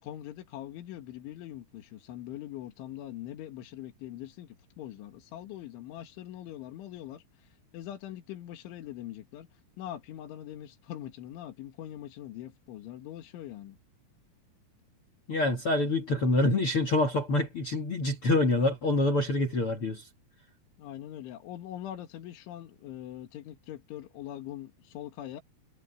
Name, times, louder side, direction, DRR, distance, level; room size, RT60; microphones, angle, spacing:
voice 1, 0.0-7.2 7.7-9.5 9.8-13.8 20.8-25.4, left 12 dB, 75° left, 4.5 m, -42 dB
voice 2, 15.3-20.0, left 2 dB, 60° left, 1.5 m, -26 dB
omnidirectional pair, 5.6 m